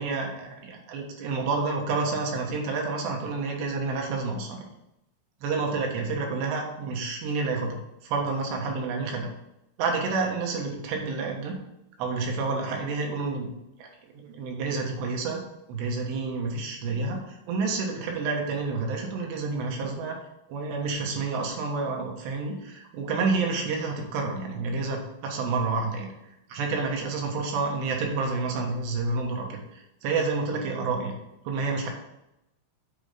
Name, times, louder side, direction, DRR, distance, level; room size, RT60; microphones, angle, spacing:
voice 1, 0.0-4.7 5.4-9.3 9.8-11.6 12.0-13.5 13.8-13.9 14.1-15.4 15.7-17.2 17.5-20.2 20.5-26.1 26.5-31.1 31.4-31.9, right 4 dB, 70° right, 1 dB, 3.4 m, -29 dB
8.5 x 4.9 x 5.2 m, 0.87 s
omnidirectional pair, 5.4 m